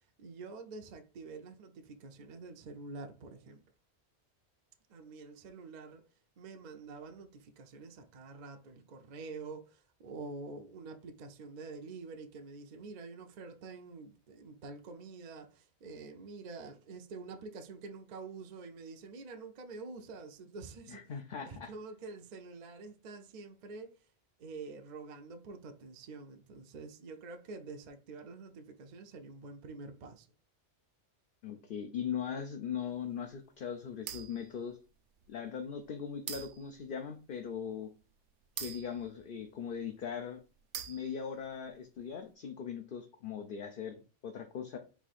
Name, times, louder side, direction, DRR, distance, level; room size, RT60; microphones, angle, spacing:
voice 1, 0.2-3.6 4.9-6.0 6.4-21.1 21.4-23.9 24.4-30.3, right 3 dB, 50° right, 0.6 m, -47 dB
voice 2, 20.9-21.7 31.4-34.8 35.3-37.9 38.6-40.4 40.9-44.8, left 7 dB, 55° left, 0.7 m, -40 dB
sound 1, 34.1-34.5 35.2-35.3 36.3-36.8 38.6-39.7 40.7-41.4, right 9 dB, 80° right, 0.9 m, -43 dB
4.7 x 2.7 x 4.1 m
omnidirectional pair, 1.2 m